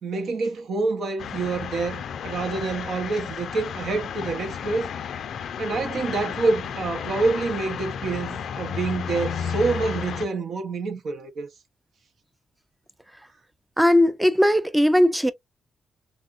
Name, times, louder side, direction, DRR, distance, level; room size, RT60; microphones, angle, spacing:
voice 1, 0.0-4.9 5.6-11.5, right 3 dB, 70° right, 0.9 m, -27 dB
sound 1, 1.2-10.3, left 7 dB, 70° left, 0.4 m, -33 dB
voice 2, 13.8-15.3, left 1 dB, 5° right, 0.4 m, -18 dB
3.4 x 2.4 x 2.4 m
cardioid pair, 70°, 0 cm